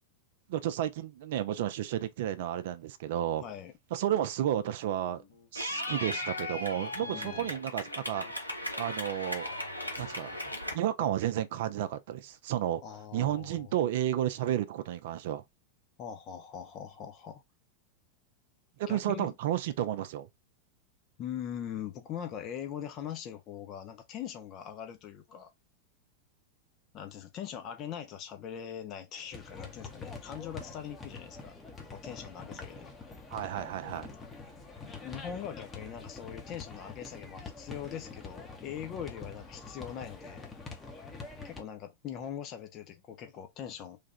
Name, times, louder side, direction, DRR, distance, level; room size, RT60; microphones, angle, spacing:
voice 1, 0.5-3.4 3.9-5.2 5.5-8.2 8.8-9.5 10.0-10.4 10.7-12.8 13.1-15.4 18.8-20.3 33.3-34.1, right 11 dB, 55° right, 0.4 m, -32 dB
voice 2, 3.4-3.7 7.0-7.5 12.8-13.7 16.0-17.4 18.9-19.3 21.2-25.5 26.9-31.5 31.9-32.9 34.8-40.5 41.4-44.0, left 9 dB, 35° left, 0.6 m, -41 dB
Guitar, 4.8-10.5, left 4 dB, 65° left, 1.8 m, -57 dB
Clapping / Cheering, 5.5-10.7, left 1 dB, 85° left, 0.9 m, -37 dB
sound 1, 29.3-41.6, left 4 dB, 15° left, 0.9 m, -45 dB
3.2 x 2.4 x 4.1 m
figure-of-eight pair, 90°, 0 cm